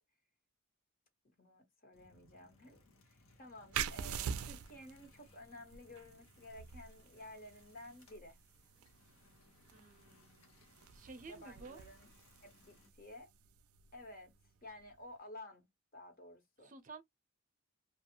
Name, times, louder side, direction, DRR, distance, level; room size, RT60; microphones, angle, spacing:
voice 1, 1.2-8.4 11.3-12.1 12.4-13.3 13.9-14.3 14.6-15.7 15.9-16.7, left 1 dB, 40° left, 1.2 m, -53 dB
sound 1, 1.9-12.9, left 2 dB, 70° left, 0.8 m, -67 dB
sound 2, 3.7-15.0, right 8 dB, 80° right, 0.3 m, -46 dB
voice 2, 9.7-10.6 10.9-11.8 16.6-17.0, right 4 dB, 35° right, 0.6 m, -53 dB
2.3 x 2.1 x 2.9 m
head